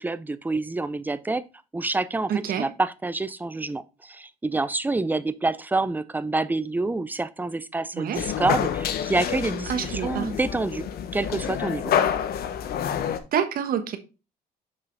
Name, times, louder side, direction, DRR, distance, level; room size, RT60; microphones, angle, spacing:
voice 1, 0.0-1.4 1.7-2.3 2.6-12.0, right 2 dB, 10° right, 0.6 m, -27 dB
voice 2, 2.3-2.7 7.9-8.2 9.7-10.3 13.3-14.0, right 8 dB, 60° right, 1.3 m, -27 dB
sound 1, 8.1-13.2, left 9 dB, 65° left, 1.1 m, -28 dB
6.9 x 5.5 x 4.0 m
cardioid pair, 110°, 17 cm